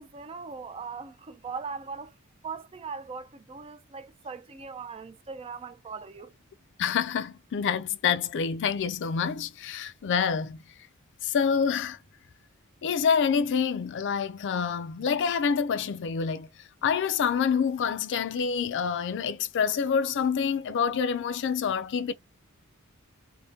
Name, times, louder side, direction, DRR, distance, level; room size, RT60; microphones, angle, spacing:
voice 1, 0.0-2.1 2.4-6.3, right 5 dB, 25° right, 0.3 m, -40 dB
voice 2, 6.8-10.6 11.2-12.0 12.8-16.5 16.8-22.1, left 6 dB, 55° left, 0.4 m, -27 dB
3.4 x 2.1 x 2.7 m
head